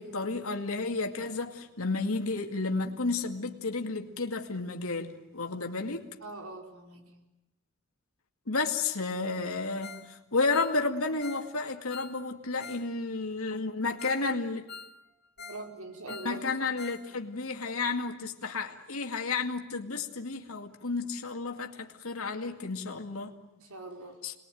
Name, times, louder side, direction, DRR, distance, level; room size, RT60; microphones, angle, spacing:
voice 1, 0.0-6.1 8.5-14.7 16.1-23.3 24.2-24.3, left 3 dB, 80° left, 4 dB, 2.2 m, -32 dB
voice 2, 6.2-7.1 15.4-16.4 23.5-24.2, right 2 dB, 85° right, 3 dB, 4.9 m, -43 dB
Ringtone, 9.8-10.1 10.4-12.9 13.1-13.2 13.7-13.8 14.0-14.3 14.5-15.7 15.9-17.1 17.3-17.4 17.9-18.0, left 5 dB, 45° left, 1.8 m, -46 dB
28.0 x 21.5 x 9.3 m, 0.97 s
head